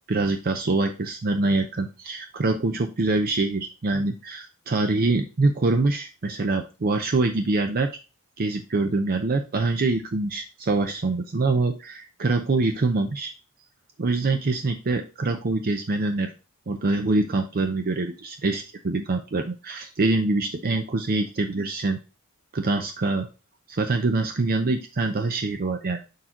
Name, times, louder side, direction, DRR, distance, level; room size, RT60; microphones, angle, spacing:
voice 1, 0.1-7.9 8.4-13.3 14.0-16.3 16.7-22.0 22.5-23.3 23.7-26.0, right 3 dB, 40° right, 5 dB, 0.6 m, -24 dB
6.6 x 4.4 x 3.7 m, 0.30 s
head